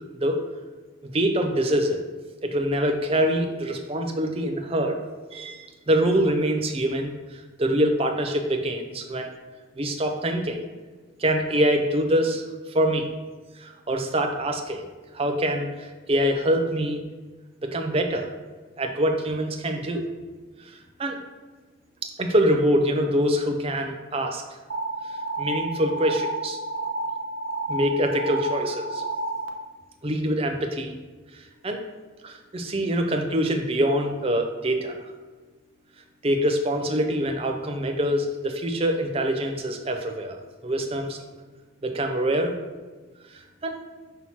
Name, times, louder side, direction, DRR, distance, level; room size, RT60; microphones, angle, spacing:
voice 1, 1.0-2.0 2.4-5.0 5.3-9.3 9.8-10.6 11.2-13.1 13.6-14.8 15.1-17.0 17.6-18.3 18.8-20.0 20.6-21.2 22.0-24.4 25.4-26.6 27.7-29.0 30.0-30.9 31.3-31.8 32.2-35.0 36.2-40.4 40.6-41.2 41.8-42.5 43.3-43.8, equal, 30° right, 4 dB, 0.6 m, -25 dB
sound 1, 24.7-29.5, right 2 dB, 75° right, 0.6 m, -30 dB
5.6 x 3.1 x 5.6 m, 1.3 s
head